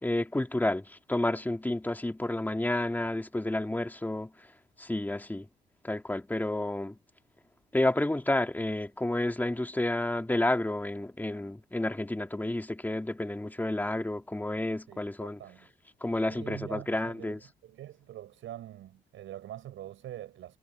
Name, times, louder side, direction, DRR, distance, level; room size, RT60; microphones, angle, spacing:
voice 1, 0.0-4.5 4.8-5.5 5.8-7.0 7.7-15.4 16.0-17.4, left 1 dB, 10° left, 2.2 m, -30 dB
voice 2, 14.9-15.7 16.3-20.6, right 12 dB, 80° right, 7.5 m, -44 dB
cardioid pair, 90°, 20 cm